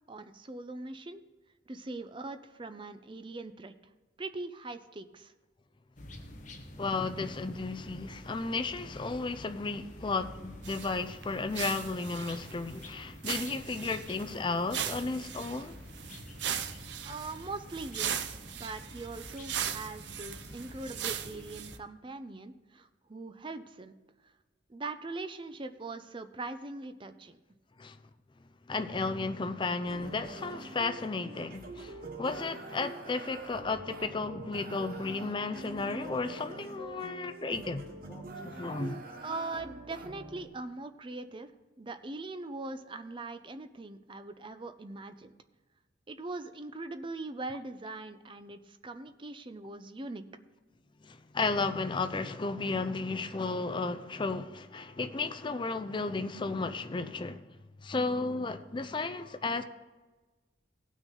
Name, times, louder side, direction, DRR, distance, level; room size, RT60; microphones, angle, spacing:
voice 1, 0.1-1.2 1.7-3.7 4.2-5.3 17.0-23.9 24.7-27.4 39.2-41.5 41.8-45.3 46.1-50.3, right 3 dB, 25° right, 0.5 m, -41 dB
sound 1, 6.0-21.8, left 1 dB, 45° left, 1.1 m, -48 dB
voice 2, 6.8-15.8 27.8-28.0 28.7-39.0 51.0-57.4 57.8-59.6, left 3 dB, 25° left, 0.5 m, -34 dB
sound 2, 10.6-11.0 11.2-11.3 11.5-12.9 13.2-14.4 14.7-21.8, right 9 dB, 75° right, 0.6 m, -38 dB
sound 3, 29.8-40.5, right 3 dB, 50° right, 1.2 m, -45 dB
17.5 x 6.2 x 3.9 m
head